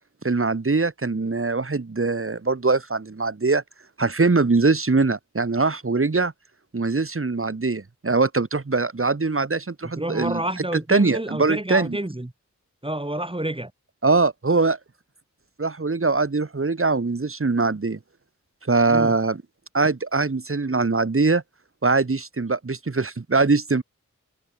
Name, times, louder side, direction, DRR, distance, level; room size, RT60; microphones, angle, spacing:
voice 1, 0.2-3.6 4.0-6.3 6.7-10.4 10.9-12.0 14.0-14.8 15.6-18.0 18.6-19.4 19.7-21.4 21.8-23.8, right 3 dB, 45° right, 3.2 m, -22 dB
voice 2, 10.0-12.3 12.8-13.7 18.9-19.2, right 1 dB, 20° right, 5.8 m, -29 dB
wide cardioid pair, 90°, 30 cm